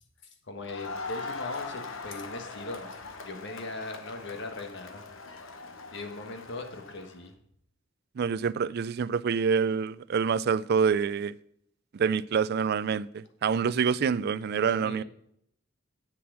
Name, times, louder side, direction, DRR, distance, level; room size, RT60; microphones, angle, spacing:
voice 1, 0.4-3.0 3.2-5.0 5.9-7.3 14.5-15.0, left 2 dB, 65° left, 1.4 m, -39 dB
Crowd, 0.6-7.2, left 4 dB, 85° left, 1.0 m, -41 dB
voice 2, 8.2-11.3 11.9-15.0, right 6 dB, 55° right, 0.4 m, -26 dB
7.8 x 7.1 x 6.2 m
head